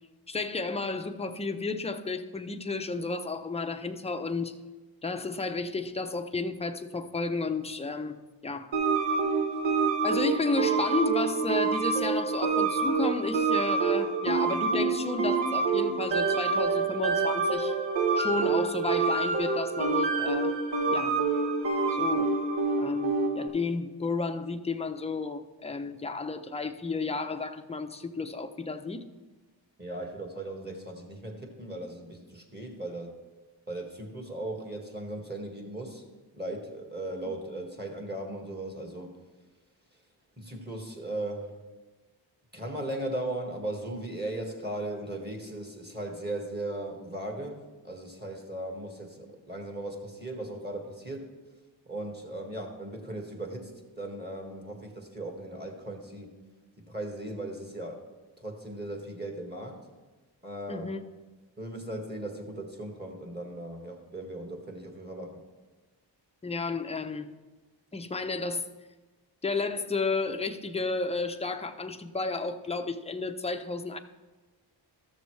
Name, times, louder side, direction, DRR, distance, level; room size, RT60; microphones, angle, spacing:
voice 1, 0.3-4.6 5.0-8.7 10.0-17.8 18.1-20.5 20.9-21.2 21.9-22.3 22.8-29.0 60.7-61.0 66.4-67.3 67.9-68.7 69.4-74.0, left 3 dB, 15° left, 0.6 m, -32 dB
sound 1, 8.7-23.5, right 4 dB, 70° right, 1.2 m, -27 dB
voice 2, 29.8-33.1 33.7-36.0 36.3-39.1 40.4-41.5 42.5-51.3 51.8-53.7 54.0-56.3 56.8-58.0 58.4-59.8 60.4-60.9 61.6-65.4, right 1 dB, 20° right, 1.7 m, -37 dB
13.0 x 6.9 x 3.2 m
cardioid pair, 60°, 46 cm